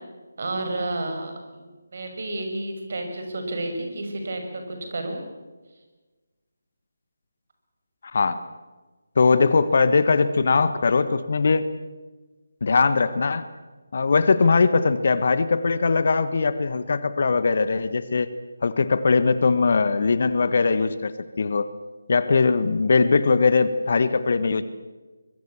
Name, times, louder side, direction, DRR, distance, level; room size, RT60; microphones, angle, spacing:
voice 1, 0.4-1.7 1.9-5.2, right 2 dB, 50° right, 5 dB, 6.2 m, -31 dB
voice 2, 8.1-8.4 9.2-11.7 12.6-13.4 13.9-18.3 18.6-21.1 21.4-21.7 22.1-24.6, left 4 dB, 45° left, 13 dB, 1.4 m, -20 dB
24.5 x 22.5 x 7.4 m, 1.2 s
figure-of-eight pair, 155°, 0 cm